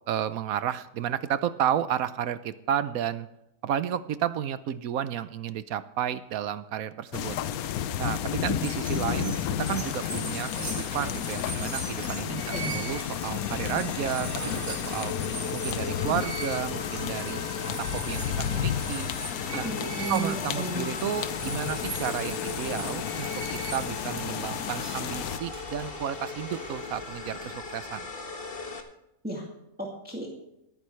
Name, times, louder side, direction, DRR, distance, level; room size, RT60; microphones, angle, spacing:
voice 1, 0.1-3.3 3.6-7.4 8.0-15.1 15.5-17.4 17.8-19.1 19.5-19.7 20.1-28.1, right 10 dB, 75° right, 14 dB, 1.1 m, -32 dB
sound 1, 7.1-25.4, left 10 dB, 80° left, 1.1 m, -32 dB
sound 2, 8.6-27.8, right 3 dB, 35° right, 3.5 m, -41 dB
sound 3, 12.4-28.8, left 3 dB, 40° left, 1.5 m, -39 dB
voice 2, 19.6-20.9 29.2-29.5 29.8-30.3, right 1 dB, 5° right, -2 dB, 2.2 m, -34 dB
24.5 x 8.9 x 3.2 m, 0.86 s
omnidirectional pair, 1.6 m